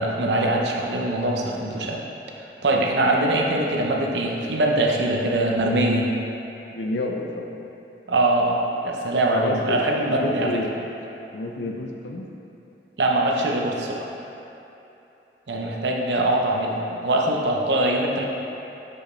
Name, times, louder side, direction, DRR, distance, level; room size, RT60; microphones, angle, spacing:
voice 1, 0.0-2.0 2.4-6.1 8.1-10.5 13.0-14.1 15.5-18.2, right 1 dB, 85° right, 0 dB, 0.7 m, -22 dB
voice 2, 6.7-7.6 9.3-9.8 10.1-10.8 11.3-12.3, left 2 dB, 85° left, 2 dB, 0.6 m, -29 dB
6.4 x 5.4 x 3.2 m, 3.0 s
head